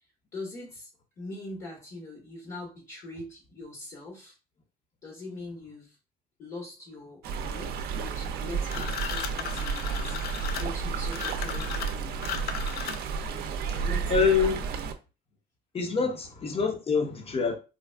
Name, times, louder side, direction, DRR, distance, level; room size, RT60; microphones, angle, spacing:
voice 1, 0.3-4.3 5.0-6.0 6.4-10.1 10.6-12.1 13.3-14.9 16.0-16.1, left 2 dB, 50° left, 1.3 m, -42 dB
Stream, 7.2-14.9, right 6 dB, 70° right, 0.5 m, -32 dB
sound 1, 8.7-13.3, left 9 dB, 65° left, 0.4 m, -36 dB
voice 2, 13.7-14.6 15.7-17.6, left 5 dB, 35° left, 0.8 m, -26 dB
3.9 x 2.3 x 2.2 m
cardioid pair, 110°, 17 cm